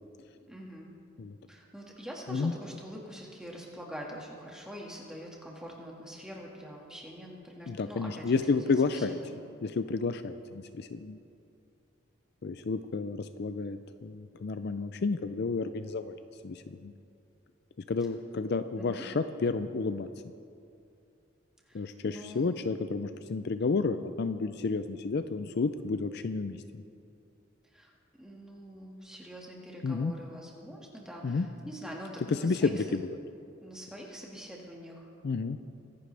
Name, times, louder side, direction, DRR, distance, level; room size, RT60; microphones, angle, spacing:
voice 1, 0.5-0.9 1.5-9.4 18.8-19.0 21.7-22.5 27.7-27.9 28.2-33.0 33.6-35.1, equal, 5° right, -2 dB, 1.9 m, -45 dB
voice 2, 7.7-9.2 9.6-11.2 12.4-16.2 16.4-16.9 17.9-20.1 21.7-26.8 29.8-30.1 31.2-31.5 32.3-33.1 35.2-35.6, left 4 dB, 50° left, 10 dB, 0.4 m, -31 dB
23.5 x 11.0 x 3.4 m, 2.5 s
head